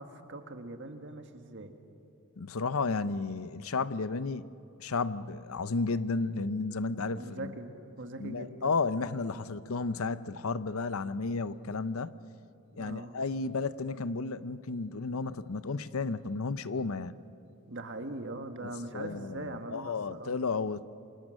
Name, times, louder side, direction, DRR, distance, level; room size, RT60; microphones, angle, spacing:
voice 1, 0.0-1.8 7.0-8.8 12.7-13.2 17.7-20.4, right 2 dB, 55° right, 1.7 m, -41 dB
voice 2, 2.4-4.5 4.8-7.5 8.2-12.1 12.8-17.2 18.9-20.8, left 4 dB, 70° left, 0.7 m, -33 dB
28.5 x 25.5 x 6.4 m
head